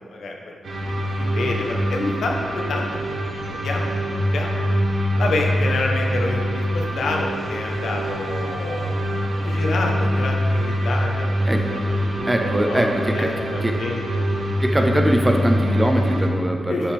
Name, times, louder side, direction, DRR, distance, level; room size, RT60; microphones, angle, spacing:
voice 1, 0.1-0.5 1.2-4.5 5.2-14.0 16.7-16.9, left 2 dB, 80° left, 1 dB, 1.0 m, -28 dB
sound 1, 0.6-16.3, equal, 65° right, 1.2 m, -24 dB
voice 2, 12.3-13.3 13.6-13.8 14.6-16.9, right 1 dB, 10° right, 3 dB, 0.6 m, -21 dB
9.5 x 5.6 x 3.5 m, 2.4 s
wide cardioid pair, 105°, 0 cm